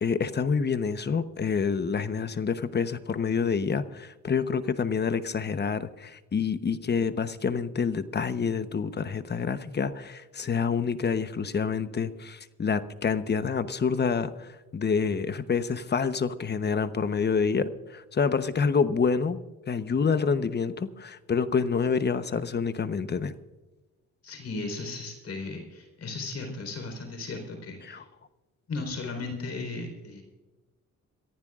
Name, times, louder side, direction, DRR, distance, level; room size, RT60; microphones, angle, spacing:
voice 1, 0.0-19.4 19.7-23.3 27.8-28.0, left 5 dB, 35° left, 12 dB, 1.0 m, -27 dB
voice 2, 24.2-28.0 28.7-30.2, left 3 dB, 55° left, 4 dB, 4.3 m, -36 dB
26.0 x 15.0 x 2.5 m, 1.2 s
cardioid pair, 90°, 30 cm